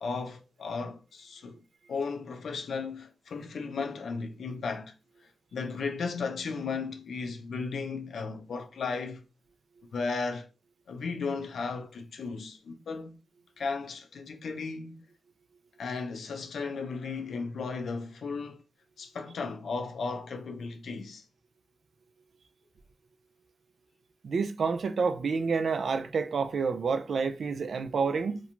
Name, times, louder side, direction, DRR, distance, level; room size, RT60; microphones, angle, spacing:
voice 1, 0.0-1.6 1.9-4.9 5.5-9.2 9.9-10.5 10.9-13.2 13.6-15.0 15.8-18.6 19.0-21.2, left 4 dB, 90° left, 0.4 m, -35 dB
voice 2, 24.2-28.4, right 5 dB, 75° right, 0.3 m, -29 dB
3.0 x 2.2 x 2.5 m
wide cardioid pair, 100°, 0 cm